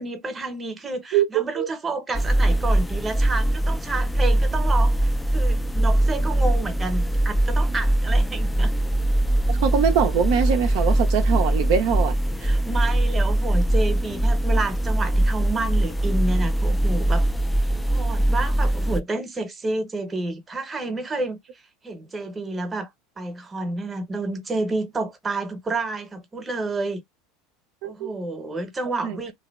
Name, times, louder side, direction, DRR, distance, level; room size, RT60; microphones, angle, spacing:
voice 1, 0.0-8.7 12.4-17.3 17.9-21.4 21.8-22.9 23.2-27.0 27.8-29.3, right 2 dB, 20° right, 0.8 m, -30 dB
voice 2, 1.1-1.7 9.5-12.1 27.8-28.1 29.0-29.3, right 8 dB, 65° right, 0.4 m, -23 dB
sound 1, 2.1-19.0, right 1 dB, 10° left, 0.3 m, -21 dB
2.6 x 2.1 x 2.3 m
hypercardioid pair, 85°, 0 cm